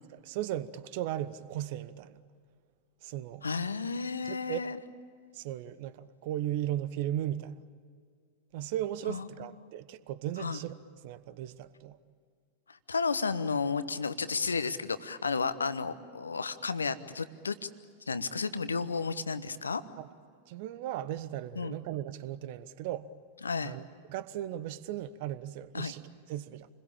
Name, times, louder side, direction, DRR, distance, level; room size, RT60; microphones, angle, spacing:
voice 1, 0.1-2.2 3.0-3.4 4.2-4.6 5.3-7.5 8.5-10.7 11.0-12.0 20.0-20.1 20.5-23.1 23.6-26.7, right 12 dB, 50° right, 1.1 m, -36 dB
voice 2, 3.4-4.8 9.1-9.3 9.6-9.7 10.4-10.6 12.7-17.7 18.1-19.8 21.6-21.8 23.4-23.8 25.7-25.9, left 4 dB, 75° left, 1.2 m, -32 dB
28.5 x 21.5 x 8.8 m
figure-of-eight pair, 90°, 0 cm